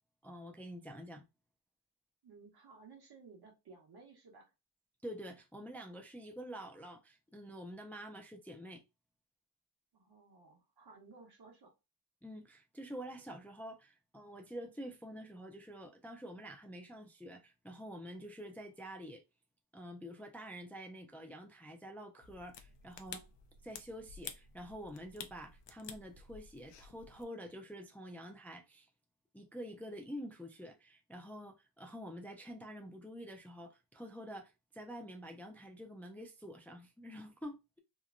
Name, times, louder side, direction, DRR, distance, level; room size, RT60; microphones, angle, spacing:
voice 1, 0.2-1.2 5.0-8.8 12.2-19.2 19.7-23.3 23.6-28.9 29.3-37.8, equal, 5° left, 0.3 m, -48 dB
voice 2, 2.2-4.5 9.9-11.7, right 4 dB, 65° right, 1.1 m, -57 dB
sound 1, 22.2-27.2, left 7 dB, 85° left, 0.5 m, -51 dB
2.9 x 2.1 x 2.4 m
wide cardioid pair, 135°, 41 cm